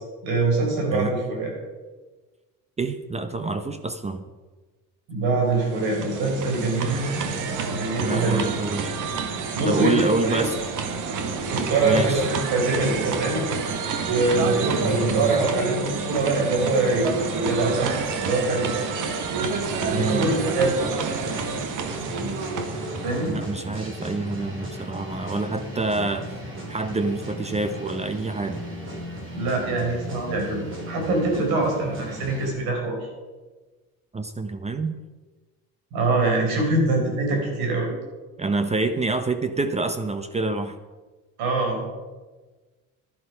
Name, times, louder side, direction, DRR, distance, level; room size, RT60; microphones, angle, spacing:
voice 1, 0.2-1.5 5.1-7.1 7.7-8.4 9.5-10.4 11.4-13.4 14.1-18.0 18.2-19.0 19.9-20.9 23.0-23.4 29.3-33.1 35.9-37.9 41.4-41.9, right 2 dB, 85° right, 0 dB, 4.9 m, -24 dB
voice 2, 2.8-4.2 8.0-8.9 9.7-10.6 11.8-12.3 14.8-15.3 19.9-20.3 23.3-26.3 26.7-28.7 34.1-34.9 38.4-40.7, right 3 dB, 20° right, 9 dB, 0.7 m, -27 dB
sound 1, 5.5-23.5, right 4 dB, 55° right, 1.6 m, -28 dB
sound 2, 21.1-32.5, right 1 dB, 35° right, 3.5 m, -36 dB
11.5 x 11.0 x 5.6 m, 1.3 s
cardioid pair, 125°, 36 cm